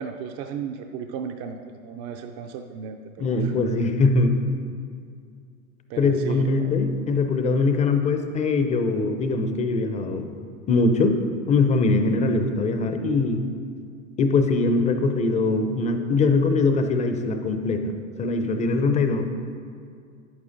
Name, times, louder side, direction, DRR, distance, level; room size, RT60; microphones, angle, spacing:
voice 1, 0.0-3.5 5.9-6.7, right 6 dB, 35° right, 4 dB, 0.4 m, -35 dB
voice 2, 3.2-4.4 6.0-10.3 10.7-11.2 11.5-13.4 14.2-17.9 18.2-19.3, left 3 dB, 15° left, 6 dB, 0.5 m, -22 dB
10.5 x 8.7 x 2.6 m, 2.2 s
hypercardioid pair, 95°, 43 cm